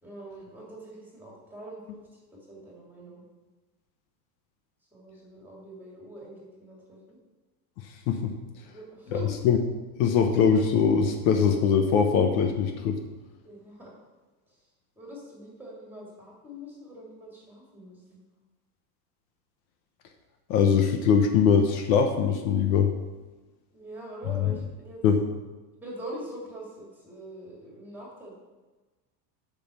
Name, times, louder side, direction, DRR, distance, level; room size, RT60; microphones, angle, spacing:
voice 1, 0.0-3.2 4.9-7.2 8.6-9.4 13.4-13.9 15.0-18.2 23.7-25.0 25.8-28.3, right 1 dB, 5° right, -4 dB, 2.7 m, -43 dB
voice 2, 10.0-13.0 20.5-22.9 25.0-25.2, left 6 dB, 60° left, 5 dB, 1.1 m, -22 dB
8.5 x 5.8 x 7.2 m, 1.2 s
supercardioid pair, 165°, 48 cm